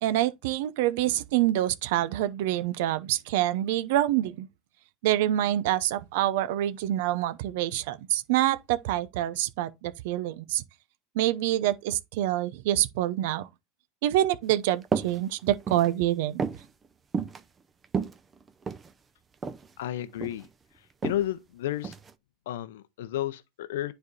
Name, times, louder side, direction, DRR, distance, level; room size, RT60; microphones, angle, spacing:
voice 1, 0.0-4.5 5.0-10.6 11.1-13.5 14.0-16.4, right 13 dB, 70° right, 0.6 m, -26 dB
sound 1, 14.9-15.2 15.5-15.9 16.4-16.7 17.1-17.4 17.8-18.9 19.4-19.7 20.0-20.5 21.0-21.2 21.8-22.1, right 5 dB, 25° right, 0.7 m, -30 dB
voice 2, 19.8-20.5 20.8-21.9 22.5-23.9, left 13 dB, 80° left, 0.6 m, -32 dB
9.7 x 3.5 x 4.0 m
hypercardioid pair, 105°, 0 cm